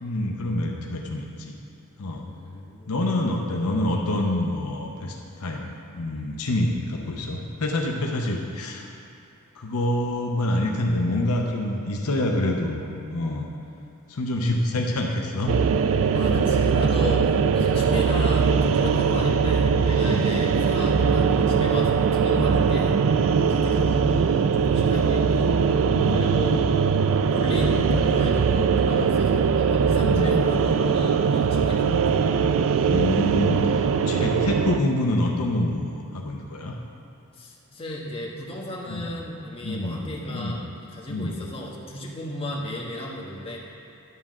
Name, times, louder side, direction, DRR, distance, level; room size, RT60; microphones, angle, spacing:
voice 1, 0.0-1.5 2.0-2.3 2.9-8.9 9.6-13.5 14.1-15.5 16.2-16.4 19.9-20.4 21.1-21.2 23.3-23.5 25.9-26.3 30.0-30.3 31.5-31.6 32.8-36.7 38.9-39.1 39.6-40.0 40.3-40.6 41.1-41.3, left 1 dB, 70° left, 0 dB, 0.8 m, -27 dB
voice 2, 2.2-2.9 16.1-23.0 23.5-25.6 26.1-26.9 27.3-32.2 37.4-43.6, left 1 dB, 25° left, -3 dB, 1.1 m, -34 dB
sound 1, 15.5-34.8, right 6 dB, 65° right, 0.3 m, -21 dB
11.0 x 3.8 x 7.3 m, 2.6 s
head